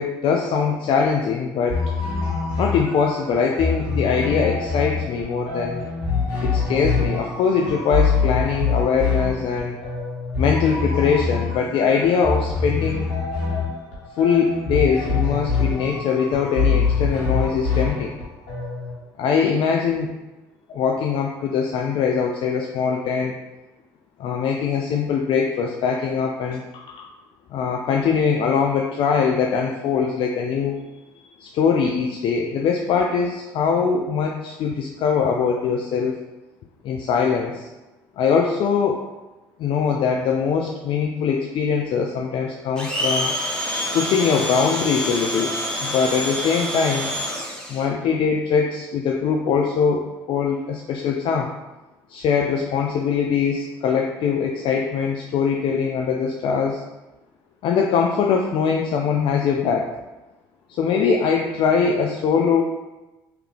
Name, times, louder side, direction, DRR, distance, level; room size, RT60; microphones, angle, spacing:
voice 1, 0.0-1.8 2.6-5.9 6.4-9.8 10.4-13.1 14.2-18.2 19.2-20.1 20.7-23.4 24.2-27.1 27.5-30.8 31.4-36.2 36.8-37.7 38.2-39.0 39.6-43.3 43.9-45.5 45.8-47.1 47.7-51.5 52.1-56.8 57.6-59.9 60.7-62.6, left 6 dB, 60° left, 1 dB, 0.4 m, -22 dB
sound 1, 1.7-19.0, left 4 dB, 80° left, 1.3 m, -24 dB
Domestic sounds home sounds, 42.8-47.8, equal, 10° left, 1.1 m, -27 dB
3.4 x 3.1 x 3.4 m, 1.1 s
hypercardioid pair, 60°, 10 cm